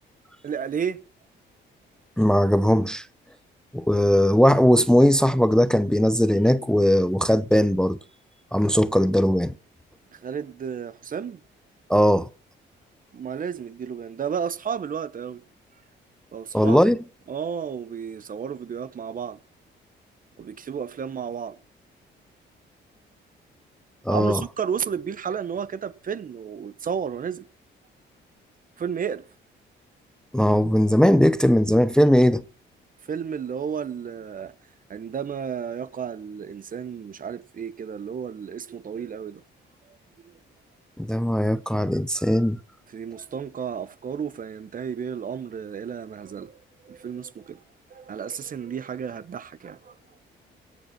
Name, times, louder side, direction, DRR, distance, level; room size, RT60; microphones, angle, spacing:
voice 1, 0.4-1.0 10.1-11.4 13.1-15.4 16.3-16.8 17.3-19.4 20.4-21.6 24.1-27.5 28.8-29.3 33.1-34.5 34.9-39.4 39.9-40.0 40.2-40.3 42.9-47.6 47.9-50.0, right 7 dB, 45° right, 0.9 m, -32 dB
voice 2, 2.2-3.1 3.7-8.0 8.5-9.5 11.9-12.3 16.5-17.0 24.1-24.4 30.3-32.4 41.0-42.6, equal, 5° left, 0.6 m, -19 dB
17.5 x 8.3 x 5.9 m
cardioid pair, 90°, 20 cm